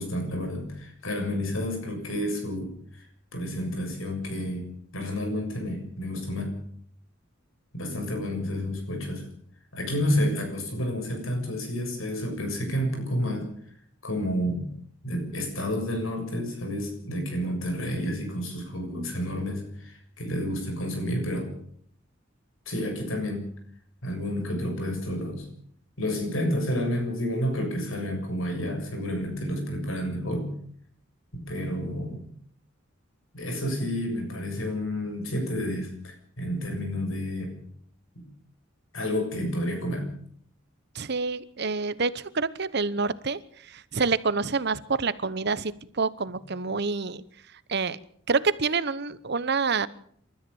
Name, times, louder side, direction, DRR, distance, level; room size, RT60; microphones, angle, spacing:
voice 1, 0.0-3.1 3.3-4.7 4.9-6.5 7.7-9.3 9.7-13.5 14.0-14.7 15.0-21.5 22.7-23.5 24.0-25.5 26.0-30.5 31.3-32.2 33.3-37.5 38.2-38.3 38.9-40.1, equal, 80° left, 4 dB, 7.2 m, -30 dB
voice 2, 40.9-47.2 47.7-48.0 48.3-49.9, right 4 dB, 55° right, 16 dB, 1.0 m, -27 dB
28.0 x 13.5 x 7.2 m, 0.62 s
head